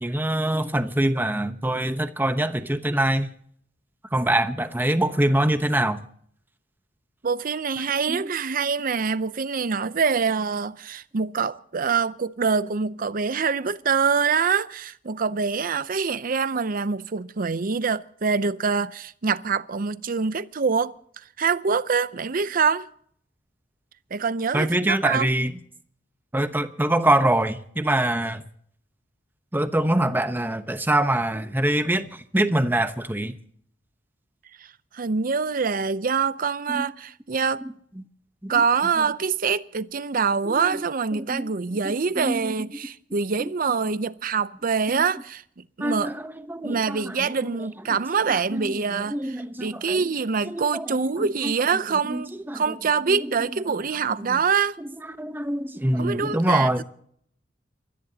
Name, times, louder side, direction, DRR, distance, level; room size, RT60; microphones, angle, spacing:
voice 1, 0.0-3.3 4.1-6.0 8.1-8.3 24.5-25.6 26.3-28.4 29.5-33.3 36.7-36.9 38.0-38.1 38.4-38.5 39.0-39.1 40.5-40.8 41.3-41.4 41.8-42.5 44.9-45.0 45.8-47.6 48.1-50.1 50.4-51.5 52.1-53.5 54.3-54.4 54.8-56.8, right 1 dB, 10° right, 0.9 m, -25 dB
voice 2, 7.2-20.9 21.4-22.9 24.1-25.3 34.9-37.6 38.5-46.1 46.6-54.8 56.0-56.8, right 5 dB, 50° right, 0.6 m, -25 dB
28.5 x 15.0 x 2.9 m
head